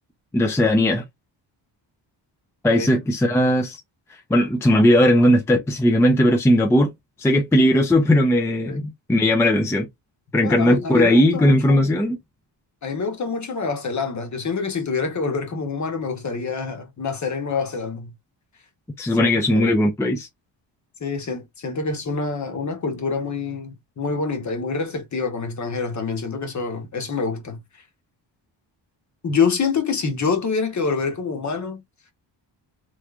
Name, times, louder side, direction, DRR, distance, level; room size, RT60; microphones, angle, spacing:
voice 1, 0.3-1.0 2.6-3.8 4.3-6.9 7.2-9.9 10.3-12.2 19.0-20.3, left 1 dB, 5° left, 0.5 m, -18 dB
voice 2, 10.4-11.9 12.8-18.1 19.1-19.7 21.0-27.6 29.2-31.8, left 5 dB, 40° left, 1.0 m, -26 dB
3.3 x 3.1 x 2.4 m
wide cardioid pair, 155°, 45 cm